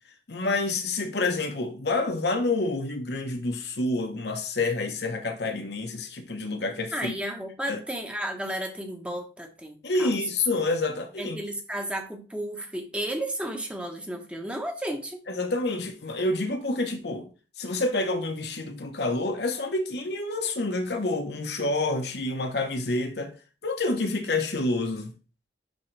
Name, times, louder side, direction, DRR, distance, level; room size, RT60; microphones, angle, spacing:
voice 1, 0.3-7.1 7.7-7.8 9.8-11.4 15.3-17.3 17.6-23.3 23.6-25.1, left 2 dB, 70° left, 1.1 m, -28 dB
voice 2, 6.9-10.2 11.2-15.2, right 1 dB, 5° right, 1.0 m, -33 dB
10.5 x 3.8 x 3.3 m
head